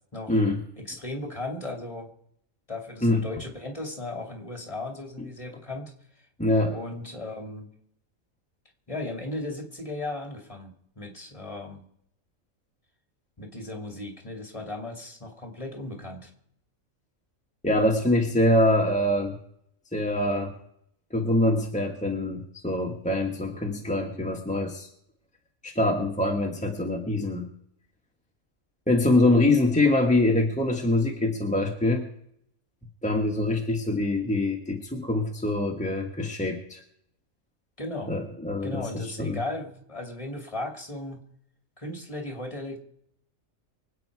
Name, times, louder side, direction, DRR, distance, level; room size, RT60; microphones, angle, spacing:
voice 1, 0.8-2.1 2.7-5.9 6.7-7.7 8.9-11.8 13.4-16.3 37.8-38.1 38.6-41.2 41.8-42.8, left 2 dB, 25° left, 3 dB, 2.5 m, -36 dB
voice 2, 6.4-6.7 17.6-19.3 19.9-20.5 21.1-24.9 25.6-27.4 28.9-32.0 33.0-36.8 38.1-39.4, left 1 dB, 5° left, 1 dB, 1.4 m, -24 dB
24.5 x 8.8 x 4.7 m, 0.72 s
omnidirectional pair, 1.4 m